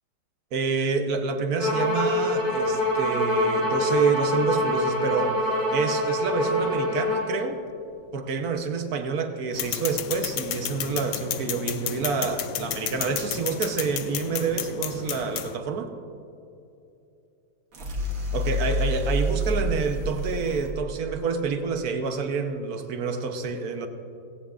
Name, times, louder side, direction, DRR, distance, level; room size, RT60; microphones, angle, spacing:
voice 1, 0.5-5.4 5.7-7.6 8.1-15.9 18.3-23.9, right 5 dB, 60° right, 6 dB, 1.3 m, -28 dB
Bowed string instrument, 1.6-7.3, left 1 dB, 50° left, 3.0 m, -25 dB
sound 1, 9.5-15.6, left 10 dB, 70° left, 0.8 m, -32 dB
sound 2, 17.7-20.7, equal, 90° right, 2.4 m, -27 dB
18.5 x 17.0 x 2.5 m, 2.8 s
omnidirectional pair, 2.0 m